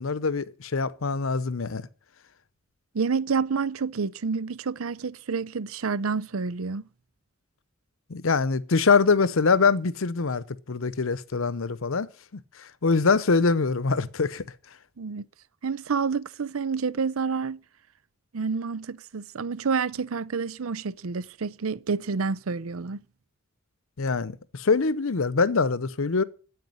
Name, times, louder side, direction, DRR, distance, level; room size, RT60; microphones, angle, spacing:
voice 1, 0.0-1.8 8.1-12.1 12.6-14.4 24.0-26.2, left 4 dB, 70° left, 0.8 m, -24 dB
voice 2, 2.9-6.8 15.0-15.2 15.6-17.6 18.3-23.0, right 5 dB, 85° right, 0.6 m, -28 dB
9.5 x 8.3 x 9.5 m
head